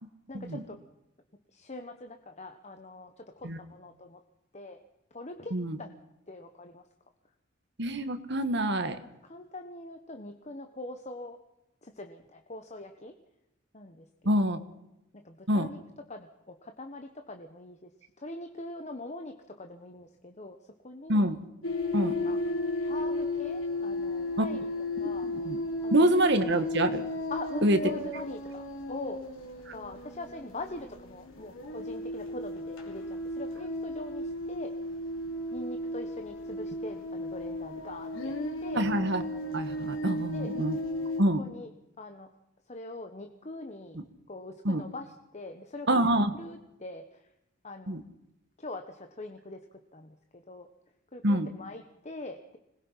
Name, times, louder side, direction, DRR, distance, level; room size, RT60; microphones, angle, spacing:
voice 1, 0.3-0.8 1.5-4.2 4.5-4.8 5.1-5.5 5.8-5.9 6.3-6.8 9.0-11.4 11.8-13.1 13.7-14.1 14.5-14.7 15.1-15.8 16.1-17.9 18.2-20.6 20.8-21.2 22.2-22.4 22.8-24.6 25.0-25.3 25.8-25.9 27.3-29.2 29.7-34.7 35.5-38.3 38.6-38.8 40.3-40.5 41.4-41.7 42.0-42.3 42.7-44.0 44.3-46.0 46.3-47.3 47.6-48.0 48.6-49.6 49.9-50.7 51.1-52.6, left 2 dB, 35° left, 6 dB, 1.3 m, -43 dB
voice 2, 7.8-9.0 14.3-14.6 15.5-15.7 21.1-21.4 21.9-22.1 24.4-24.5 25.2-25.6 25.9-27.0 27.6-27.8 29.7-29.8 38.7-39.2 39.5-40.8 41.2-41.4 44.6-44.8 45.9-46.3 47.9-48.0 51.2-51.5, right 1 dB, 60° right, 9 dB, 1.7 m, -26 dB
sound 1, 21.6-41.2, left 1 dB, 90° left, 3.5 m, -34 dB
26.0 x 20.5 x 5.8 m, 0.90 s
head